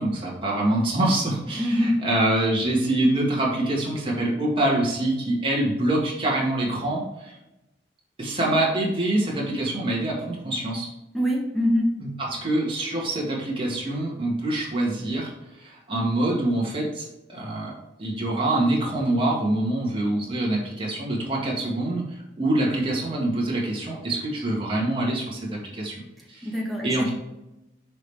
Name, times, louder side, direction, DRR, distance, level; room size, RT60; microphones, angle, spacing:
voice 1, 0.0-7.4 8.2-10.9 12.0-12.1 12.4-15.3 15.6-17.7 18.0-26.0 26.3-26.5 26.8-27.1, right 1 dB, 30° right, -4 dB, 1.9 m, -25 dB
voice 2, 1.6-2.0 11.1-11.9 26.4-27.1, equal, ahead, -3 dB, 1.5 m, -24 dB
6.4 x 5.1 x 3.5 m, 0.95 s
head